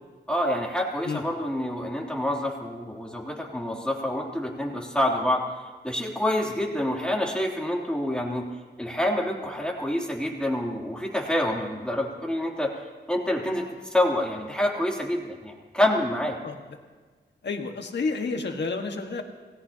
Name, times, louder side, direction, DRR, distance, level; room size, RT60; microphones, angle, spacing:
voice 1, 0.3-5.4 5.8-8.5 8.8-12.7 13.1-13.6 13.9-16.4, left 1 dB, 5° left, -2 dB, 2.9 m, -27 dB
voice 2, 17.4-19.2, left 4 dB, 75° left, 4 dB, 1.6 m, -30 dB
27.0 x 18.0 x 2.9 m, 1.4 s
wide cardioid pair, 120°, 18 cm